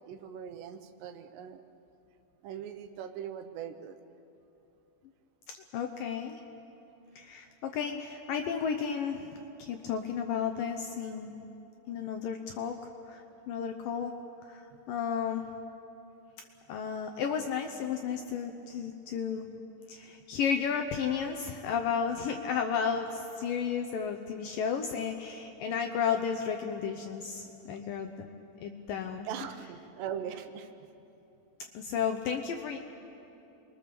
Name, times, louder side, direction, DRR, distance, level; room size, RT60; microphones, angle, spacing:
voice 1, 0.1-1.6 2.4-4.0 29.3-30.7, right 9 dB, 80° right, 8 dB, 3.2 m, -40 dB
voice 2, 5.7-6.4 7.2-11.3 11.9-12.8 13.1-13.2 13.5-14.1 14.4-14.6 14.9-15.4 16.7-19.5 19.9-28.1 28.6-29.3 31.7-32.8, left 7 dB, 75° left, 5 dB, 2.1 m, -33 dB
29.0 x 22.5 x 6.9 m, 2.8 s
omnidirectional pair, 4.9 m